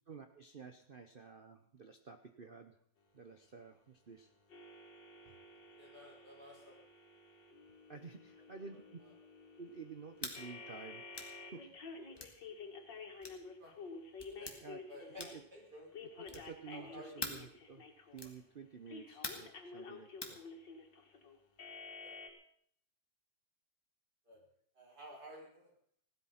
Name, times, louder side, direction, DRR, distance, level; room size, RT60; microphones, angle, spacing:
voice 1, 0.1-2.7 3.1-4.3 7.9-9.0 9.6-11.0 11.5-11.7 14.6-14.8 15.2-15.4 16.2-17.8 18.1-20.4, right 5 dB, 40° right, 7 dB, 0.8 m, -51 dB
sound 1, 4.5-15.4 15.9-18.3 18.9-22.3, left 4 dB, 75° left, 2.6 m, -51 dB
voice 2, 5.8-6.8 9.0-9.1 13.6-13.7 14.4-14.5 14.9-15.9 16.3-16.4 16.7-17.1 22.0-22.2 24.3-24.4 24.8-25.7, equal, 60° right, -2 dB, 5.7 m, -53 dB
sound 2, 10.2-10.4 11.1-11.4 12.2-12.4 13.2-13.4 14.2-14.6 15.2-15.5 16.2-16.6 17.2-17.5 18.2-18.4 19.2-19.5 20.2-20.4, left 1 dB, 15° left, 2.1 m, -44 dB
16.5 x 12.0 x 5.8 m, 0.67 s
omnidirectional pair, 2.0 m